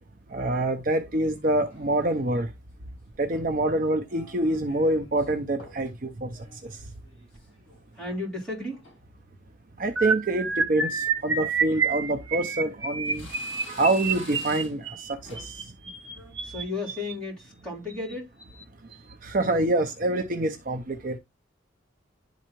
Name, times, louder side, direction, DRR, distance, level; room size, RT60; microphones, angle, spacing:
voice 1, 0.3-2.5 3.2-6.9 9.8-13.3 13.7-15.7 19.2-21.2, right 2 dB, 45° right, 0.6 m, -26 dB
sound 1, 1.7-2.4 3.1-3.6 4.1-5.3 5.6-5.9 6.3-8.2 8.5-9.0 9.6-9.9 10.2-10.3 11.3-11.4 12.1-12.7 13.0-14.9 15.3-15.6 16.0-16.3, left 2 dB, 30° left, 5.3 m, -49 dB
voice 2, 8.0-8.8 16.4-18.3, left 2 dB, 5° left, 3.5 m, -34 dB
sound 2, 10.0-17.1 17.9-18.1 18.4-18.6 18.9-19.1, right 5 dB, 80° right, 1.2 m, -29 dB
11.0 x 3.9 x 2.9 m
head